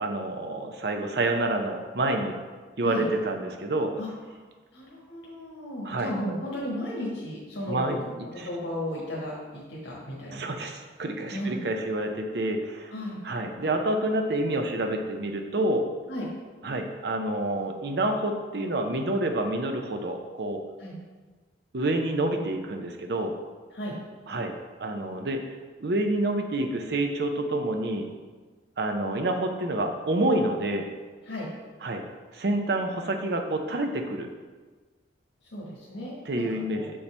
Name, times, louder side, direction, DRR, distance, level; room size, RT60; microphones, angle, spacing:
voice 1, 0.0-2.4 2.8-3.9 5.8-6.1 7.7-8.5 10.3-12.9 13.2-15.9 16.6-20.6 21.7-23.3 24.3-24.5 24.8-25.4 25.8-28.1 28.8-30.9 31.8-32.0 32.3-34.3 36.3-36.8, right 1 dB, 60° right, 4 dB, 0.6 m, -28 dB
voice 2, 4.7-7.9 8.2-10.5 11.3-11.7 12.9-13.2 16.1-16.2 20.8-21.0 23.7-24.0 31.2-31.5 35.5-36.5 36.7-36.9, equal, 75° left, -6 dB, 1.5 m, -34 dB
6.7 x 5.4 x 3.3 m, 1.4 s
head